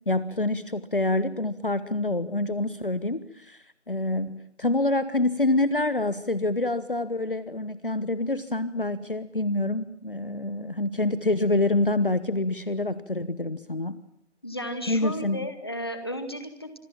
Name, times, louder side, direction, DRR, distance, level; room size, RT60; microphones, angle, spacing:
voice 1, 0.1-14.0 14.9-15.4, left 2 dB, 50° left, 15 dB, 1.3 m, -26 dB
voice 2, 14.4-16.8, equal, 20° left, 9 dB, 1.9 m, -34 dB
26.5 x 20.5 x 8.9 m, 0.68 s
figure-of-eight pair, 175°, 34 cm